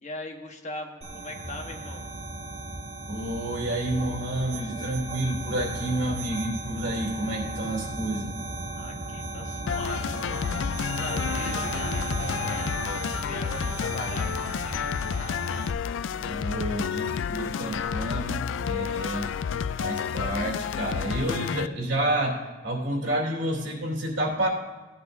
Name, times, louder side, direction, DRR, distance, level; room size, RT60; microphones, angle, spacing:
voice 1, 0.0-2.0 8.8-10.3 10.7-15.5 16.5-17.6, left 2 dB, 40° left, 3 dB, 1.3 m, -41 dB
sound 1, 1.0-15.7, right 2 dB, 35° right, 1.6 m, -35 dB
voice 2, 3.1-8.4 16.1-19.3 19.8-24.5, right 1 dB, 75° right, -2 dB, 2.8 m, -29 dB
sound 2, 9.7-21.7, left 7 dB, 90° left, 0.4 m, -30 dB
17.5 x 10.5 x 2.6 m, 1.3 s
head